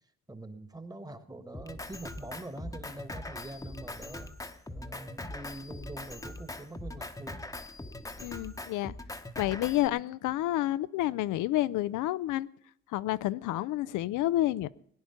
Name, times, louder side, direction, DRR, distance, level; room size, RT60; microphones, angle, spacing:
voice 1, 0.3-4.3 4.7-7.4, right 2 dB, 10° right, 11 dB, 1.4 m, -44 dB
Drum kit, 1.5-9.9, left 2 dB, 10° left, 0.9 m, -41 dB
voice 2, 8.2-8.9 9.4-12.5 12.9-14.7, left 15 dB, 85° left, 16 dB, 0.5 m, -29 dB
19.0 x 9.8 x 5.7 m, 0.67 s
cardioid pair, 90°, 30 cm